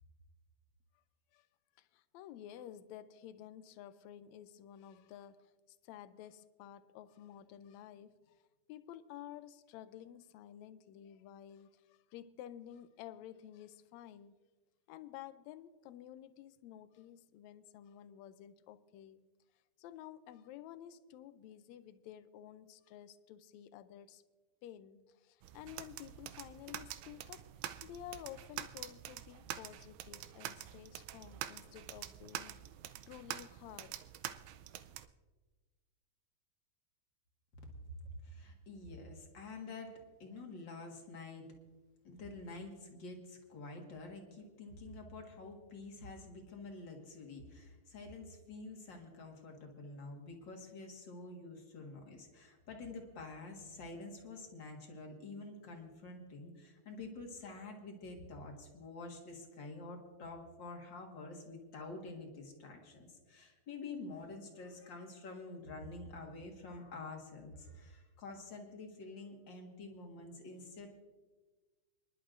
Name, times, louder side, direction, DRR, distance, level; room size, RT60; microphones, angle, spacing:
voice 1, 1.8-8.4 8.7-14.3 14.9-19.3 19.8-24.2 24.6-27.5 27.8-32.6 33.1-34.0, left 11 dB, 80° left, 13 dB, 1.7 m, -52 dB
sound 1, 25.4-35.1, right 12 dB, 80° right, 1.8 m, -46 dB
voice 2, 37.7-39.9 40.2-41.5 42.0-70.9, left 3 dB, 45° left, 2 dB, 2.0 m, -48 dB
29.0 x 11.0 x 2.5 m, 1.3 s
omnidirectional pair, 3.6 m